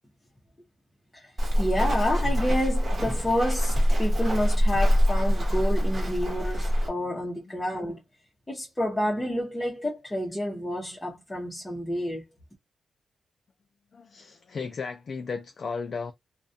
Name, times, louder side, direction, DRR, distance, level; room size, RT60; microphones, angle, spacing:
Walk footsteps, 1.4-6.9, equal, 40° right, 1.0 m, -24 dB
voice 1, 1.6-8.0 8.5-12.2, equal, 10° left, 0.7 m, -29 dB
voice 2, 13.9-16.1, left 5 dB, 50° left, 0.3 m, -35 dB
2.3 x 2.1 x 2.6 m
wide cardioid pair, 145°, 0 cm